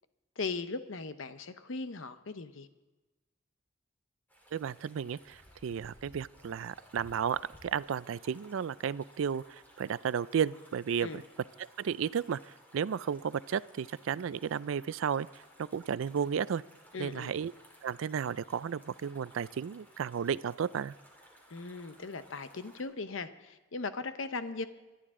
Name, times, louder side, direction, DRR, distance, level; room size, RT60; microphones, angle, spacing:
voice 1, 0.4-2.7 11.0-11.2 16.9-17.3 21.5-24.7, left 4 dB, 75° left, 11 dB, 0.8 m, -38 dB
sound 1, 4.3-22.8, equal, 10° left, 2.8 m, -58 dB
voice 2, 4.5-11.2 11.8-12.4 12.7-15.3 15.6-16.6 17.0-17.5 17.8-20.9, right 7 dB, 80° right, 19 dB, 0.4 m, -33 dB
24.0 x 11.0 x 3.7 m, 1.2 s
head